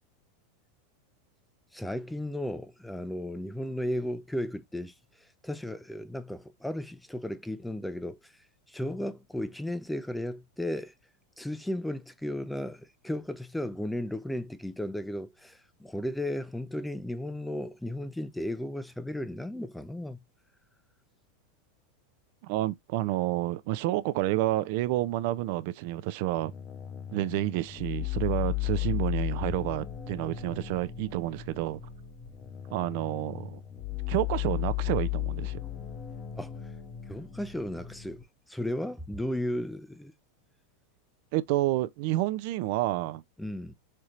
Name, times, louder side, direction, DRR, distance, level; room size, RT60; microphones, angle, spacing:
voice 1, 1.7-4.9 5.4-8.3 8.7-10.9 11.4-20.2 36.4-36.5 37.1-38.2 38.5-40.1 43.4-43.7, left 1 dB, 5° left, 0.4 m, -34 dB
voice 2, 22.4-26.5 27.1-31.8 32.7-33.6 34.1-35.6 41.3-43.2, right 16 dB, 60° right, 0.4 m, -29 dB
sound 1, 26.3-38.2, left 15 dB, 30° left, 0.7 m, -35 dB
4.3 x 3.1 x 2.4 m
supercardioid pair, 140°, 0 cm